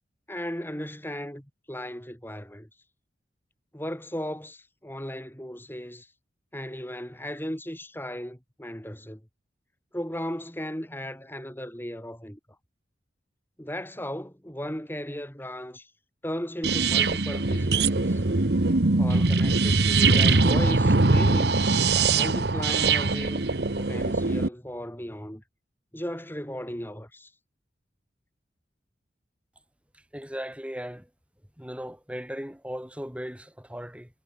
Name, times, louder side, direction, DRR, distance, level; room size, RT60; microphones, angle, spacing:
voice 1, 0.3-2.7 3.7-6.1 6.5-9.2 9.9-12.4 13.6-15.9 16.2-18.2 19.0-21.6 22.1-25.4 25.9-27.3, equal, 10° left, 4.9 m, -36 dB
sound 1, 16.6-24.5, right 3 dB, 60° right, 1.2 m, -22 dB
voice 2, 30.1-31.1 31.6-34.1, equal, 5° right, 5.6 m, -37 dB
head